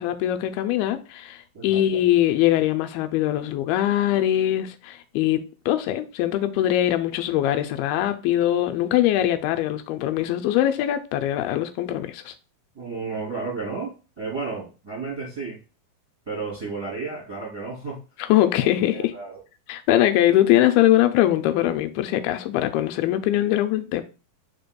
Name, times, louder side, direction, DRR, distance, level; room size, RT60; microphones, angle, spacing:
voice 1, 0.0-12.3 18.2-19.1 19.7-24.0, left 13 dB, 85° left, 2.4 m, -22 dB
voice 2, 1.5-1.9 12.7-15.6 16.3-18.0 18.6-18.7 18.9-19.4, right 4 dB, 10° right, 1.9 m, -32 dB
5.1 x 4.6 x 2.2 m
omnidirectional pair, 4.3 m